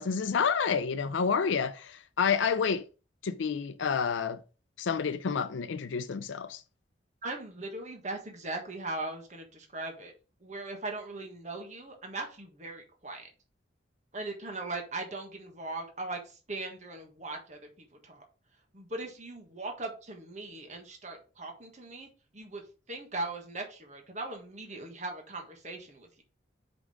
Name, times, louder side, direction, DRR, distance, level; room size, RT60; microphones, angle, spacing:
voice 1, 0.0-2.9 3.2-4.4 4.8-6.6, left 6 dB, 85° left, 0.5 m, -29 dB
voice 2, 7.2-10.1 10.4-13.3 14.1-18.2 18.7-22.6 22.9-26.2, right 2 dB, 40° right, 1.5 m, -39 dB
5.2 x 4.9 x 4.9 m
head